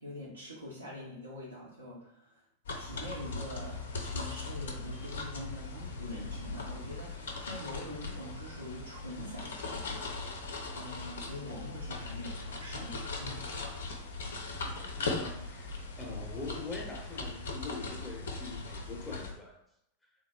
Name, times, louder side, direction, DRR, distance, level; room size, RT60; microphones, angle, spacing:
voice 1, 0.0-2.4 2.8-13.5, left 1 dB, 85° right, -7 dB, 0.9 m, -45 dB
sound 1, 2.7-19.3, left 3 dB, 65° left, 0.6 m, -39 dB
voice 2, 14.2-19.6, left 3 dB, 10° left, -1 dB, 0.8 m, -44 dB
3.7 x 2.6 x 3.2 m, 0.79 s
figure-of-eight pair, 90°, 0 cm